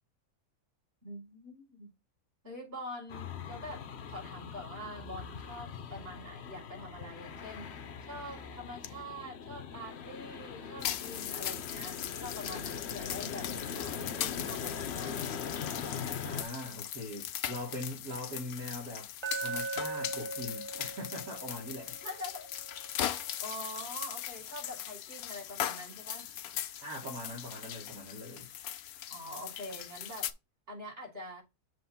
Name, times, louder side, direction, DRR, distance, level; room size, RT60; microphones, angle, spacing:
voice 1, 1.0-1.9 2.4-15.3 22.0-22.5 23.4-26.4 29.1-30.3 30.7-31.4, equal, 40° right, 4.8 m, -45 dB
sound 1, 3.1-16.4, left 7 dB, 50° left, 1.0 m, -41 dB
sound 2, 10.8-30.3, left 11 dB, 80° left, 1.1 m, -39 dB
voice 2, 16.2-19.1 19.4-22.0 26.8-28.5, left 1 dB, 70° right, 2.4 m, -41 dB
Glass, 19.2-23.3, right 4 dB, 25° right, 0.7 m, -40 dB
7.6 x 3.1 x 5.7 m
omnidirectional pair, 1.6 m